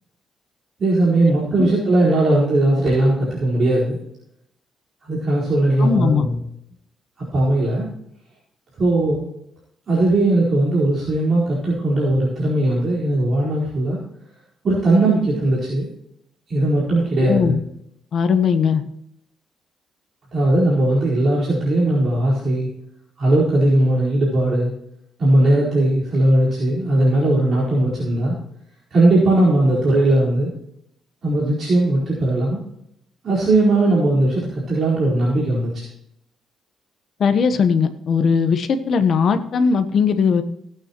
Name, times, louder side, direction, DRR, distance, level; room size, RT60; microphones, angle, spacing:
voice 1, 0.8-4.0 5.1-6.4 7.3-7.9 8.8-9.2 9.9-14.0 14.6-15.9 16.5-17.6 20.3-22.7 23.2-24.7 25.2-28.4 28.9-30.5 31.2-32.6 33.2-35.8, right 1 dB, 45° right, -7 dB, 4.6 m, -18 dB
voice 2, 5.8-6.3 17.2-17.6 18.1-18.8 37.2-40.4, left 6 dB, 50° left, 9 dB, 1.1 m, -18 dB
17.0 x 9.0 x 3.1 m, 0.75 s
cardioid pair, 150°, 0 cm